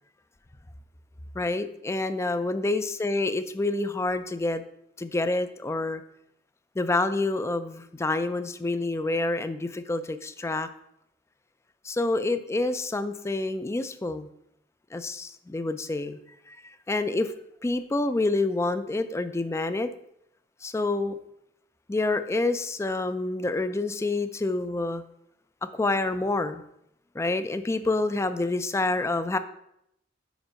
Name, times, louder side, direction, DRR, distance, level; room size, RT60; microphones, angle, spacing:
voice 1, 1.3-4.6 5.0-6.0 6.8-10.7 11.8-14.3 14.9-16.2 16.5-16.6 16.9-17.3 17.6-19.9 20.6-21.2 21.9-25.0 25.6-26.6 27.1-29.4, left 2 dB, 15° left, 11 dB, 0.3 m, -27 dB
5.1 x 4.6 x 6.2 m, 0.77 s
head